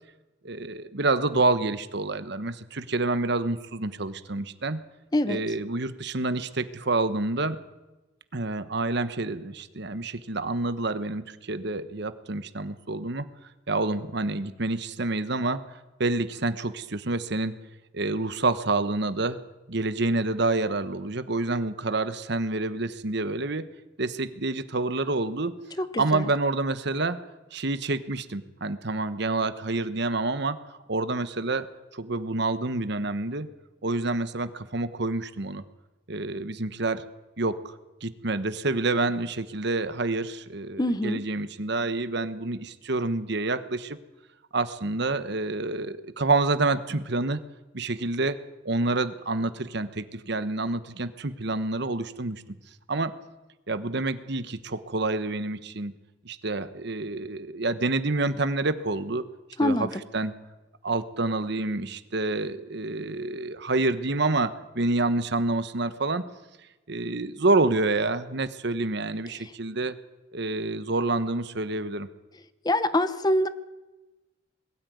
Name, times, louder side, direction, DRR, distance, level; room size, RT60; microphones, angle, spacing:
voice 1, 0.4-4.8 5.3-7.6 8.3-13.3 13.7-15.6 16.0-17.5 17.9-19.4 19.7-23.7 24.0-25.6 26.0-27.2 27.5-30.6 30.9-31.7 31.9-33.5 33.8-35.6 36.1-37.0 37.4-37.7 38.0-44.0 44.5-47.4 47.7-48.4 48.6-52.4 52.9-53.1 53.7-55.9 56.2-59.2 59.6-60.3 60.8-66.2 66.9-69.9 70.3-72.1, right 2 dB, 60° right, 12 dB, 1.2 m, -28 dB
voice 2, 25.8-26.3 40.8-41.2 59.6-59.9 69.4-69.5 72.6-73.5, left 1 dB, 20° left, 13 dB, 0.9 m, -25 dB
21.5 x 13.0 x 9.5 m, 1.1 s
head